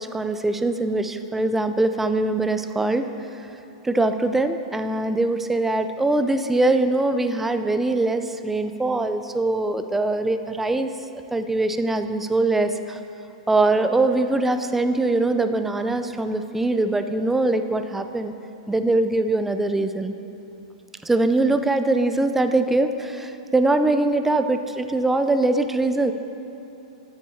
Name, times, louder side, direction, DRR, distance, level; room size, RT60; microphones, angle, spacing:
voice 1, 0.0-3.0 3.3-3.5 3.8-10.9 11.3-13.0 13.5-18.3 18.7-20.1 21.0-26.1, right 2 dB, 5° right, 8 dB, 0.4 m, -22 dB
8.2 x 7.2 x 5.6 m, 3.0 s
hypercardioid pair, 130°, 3 cm